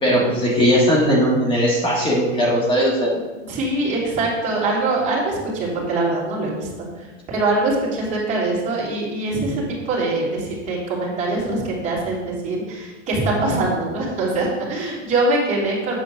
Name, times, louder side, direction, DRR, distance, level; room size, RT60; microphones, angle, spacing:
voice 1, 0.0-3.2, equal, 15° left, -3 dB, 1.5 m, -18 dB
voice 2, 3.4-16.0, right 2 dB, 20° right, -7 dB, 3.1 m, -23 dB
8.6 x 4.2 x 6.7 m, 1.2 s
supercardioid pair, 160°, 36 cm